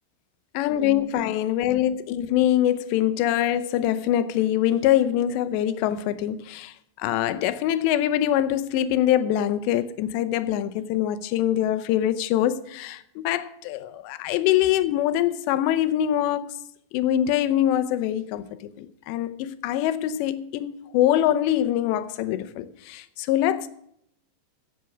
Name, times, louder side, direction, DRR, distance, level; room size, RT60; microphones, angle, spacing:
voice 1, 0.5-16.5 16.9-23.7, left 12 dB, 80° left, 2.6 m, -24 dB
15.0 x 8.3 x 6.0 m
omnidirectional pair, 5.5 m